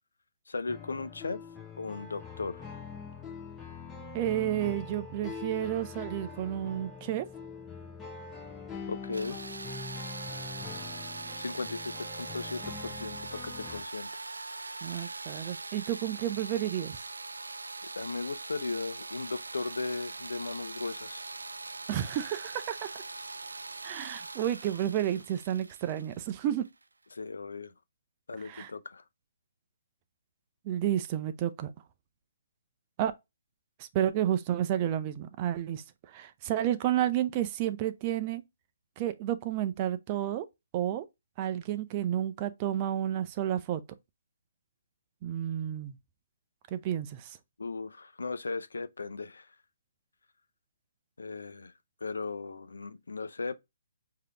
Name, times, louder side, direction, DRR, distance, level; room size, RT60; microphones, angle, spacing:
voice 1, 0.5-1.4 1.8-2.8 8.9-9.4 11.4-14.2 18.0-21.2 27.1-27.7 28.3-29.0 47.6-49.5 51.2-51.7 52.0-53.6, left 3 dB, 75° left, 0.6 m, -37 dB
sound 1, 0.7-13.8, left 5 dB, 10° left, 0.9 m, -43 dB
voice 2, 4.1-7.3 14.8-17.0 21.9-22.9 23.8-26.7 28.4-28.7 30.6-31.7 33.0-33.1 33.8-38.4 39.0-40.5 40.7-41.1 41.4-43.8 45.2-46.0 46.7-47.4, right 11 dB, 30° right, 0.5 m, -31 dB
sound 2, 9.1-26.8, right 3 dB, 80° right, 0.4 m, -42 dB
5.0 x 2.8 x 3.3 m
figure-of-eight pair, 135°, 0 cm